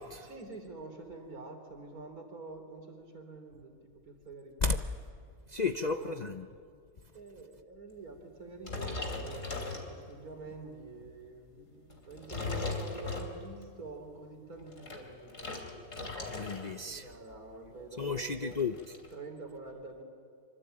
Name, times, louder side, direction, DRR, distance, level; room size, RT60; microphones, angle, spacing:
voice 1, 0.2-4.8 5.9-6.2 7.1-15.7 16.9-18.6 19.1-20.0, right 3 dB, 85° right, 4 dB, 3.6 m, -47 dB
voice 2, 5.5-6.4 16.3-17.1 18.0-18.7, left 4 dB, 40° left, 8 dB, 0.7 m, -33 dB
sound 1, 8.6-10.4 10.9-11.1 11.9-13.7 14.5-16.8 17.1-17.4 17.7-17.8 18.0-19.1, left 3 dB, 60° left, 3.6 m, -38 dB
25.5 x 25.0 x 8.8 m, 2.2 s
omnidirectional pair, 1.5 m